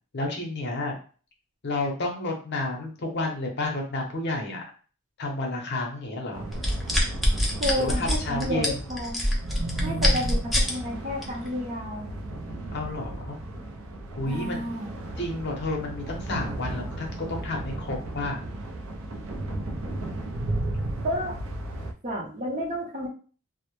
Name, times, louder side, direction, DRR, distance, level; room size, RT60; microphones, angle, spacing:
voice 1, 0.1-0.9 1.6-4.6 5.2-6.4 7.8-8.8 12.7-13.4 14.2-14.6 15.2-18.4, left 2 dB, 50° left, 1 dB, 0.6 m, -30 dB
sound 1, 6.3-21.9, right 1 dB, 70° right, 0.4 m, -35 dB
sound 2, 6.5-10.7 11.2-11.5, equal, ahead, 0.4 m, -24 dB
voice 2, 7.6-9.3 9.8-12.1 14.3-14.9 21.0-21.4 22.0-23.1, equal, 35° right, -2 dB, 0.7 m, -31 dB
2.1 x 2.0 x 2.9 m, 0.39 s
head